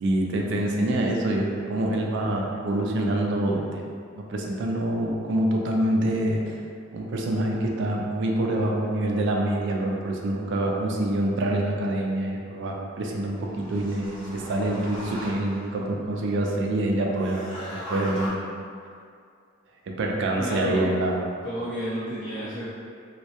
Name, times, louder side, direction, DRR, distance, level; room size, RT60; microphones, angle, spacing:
voice 1, 0.0-3.8 4.2-6.6 6.9-18.5 20.0-21.3, right 1 dB, 60° right, 0 dB, 0.3 m, -26 dB
sound 1, 13.1-15.8 17.1-18.3, equal, 10° right, 0.9 m, -39 dB
voice 2, 20.4-20.9 21.4-22.6, equal, 60° left, -14 dB, 0.7 m, -31 dB
2.2 x 2.1 x 2.8 m, 2.3 s
head